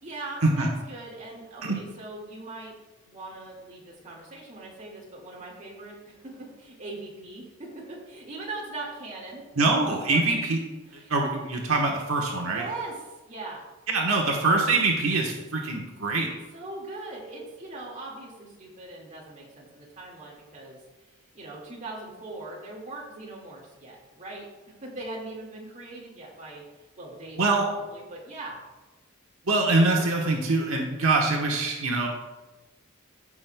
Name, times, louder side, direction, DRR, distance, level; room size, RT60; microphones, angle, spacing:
voice 1, 0.0-2.7 3.0-9.6 10.0-10.2 10.8-11.1 12.5-13.0 13.3-13.7 16.5-20.8 21.3-24.5 24.8-26.7 27.0-28.6, right 2 dB, 35° right, -3 dB, 2.0 m, -40 dB
voice 2, 9.6-10.6 11.1-12.6 13.9-16.3 27.4-27.7 29.5-32.1, right 3 dB, 75° right, 0 dB, 1.1 m, -24 dB
15.0 x 6.1 x 2.2 m, 1.1 s
head